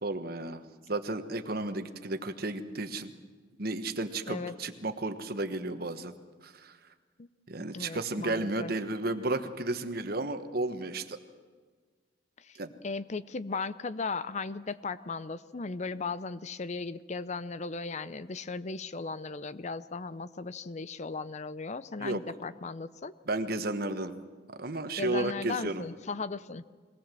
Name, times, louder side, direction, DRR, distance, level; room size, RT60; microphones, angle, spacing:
voice 1, 0.0-0.6 0.9-3.1 3.6-6.1 6.4-6.8 7.5-11.2 12.5-12.7 22.0-22.2 23.3-24.2 24.6-25.9, right 2 dB, 50° right, 9 dB, 1.3 m, -33 dB
voice 2, 7.7-8.7 12.4-12.6 12.8-23.1 25.0-26.6, left 4 dB, 35° left, 15 dB, 0.5 m, -37 dB
22.0 x 18.0 x 7.6 m, 1.5 s
head